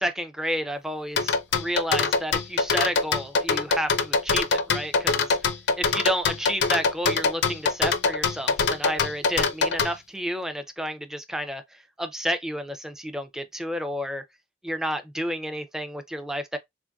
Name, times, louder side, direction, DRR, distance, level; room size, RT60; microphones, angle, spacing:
voice 1, 0.0-11.6 12.0-14.2 14.6-16.6, equal, 5° right, 0.3 m, -31 dB
sound 1, 1.2-9.9, left 4 dB, 65° left, 0.4 m, -23 dB
3.2 x 2.5 x 2.2 m
head